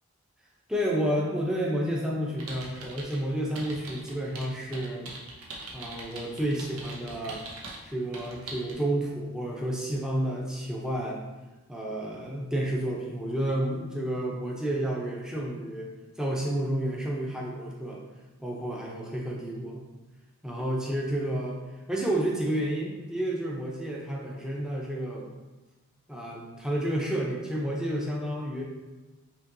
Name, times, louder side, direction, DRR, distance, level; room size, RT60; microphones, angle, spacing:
voice 1, 0.7-5.1 5.7-7.4 7.8-11.2 11.7-15.9 16.2-18.0 18.4-19.8 20.4-21.6 21.9-25.3 26.1-28.6, right 1 dB, 5° right, -3 dB, 0.6 m, -30 dB
sound 1, 2.4-3.2 3.6-7.8 8.1-8.7, right 2 dB, 80° right, 0.8 m, -42 dB
5.4 x 3.0 x 2.6 m, 1.1 s
head